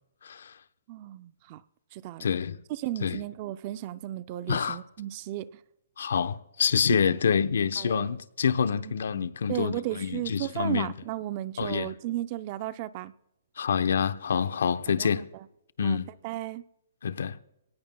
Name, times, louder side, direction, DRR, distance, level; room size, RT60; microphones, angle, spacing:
voice 1, 0.2-0.6 2.2-2.6 3.0-3.2 4.5-4.8 6.0-10.9 11.6-11.9 13.6-15.3 15.8-16.1 17.0-17.4, left 7 dB, 60° left, 0.8 m, -27 dB
voice 2, 0.9-1.6 1.9-2.3 2.7-5.5 6.9-7.2 7.8-8.1 8.8-13.1 15.0-15.5 15.8-16.0 16.2-16.6, right 14 dB, 25° right, 0.4 m, -35 dB
22.0 x 18.0 x 2.2 m
hypercardioid pair, 175°, 0 cm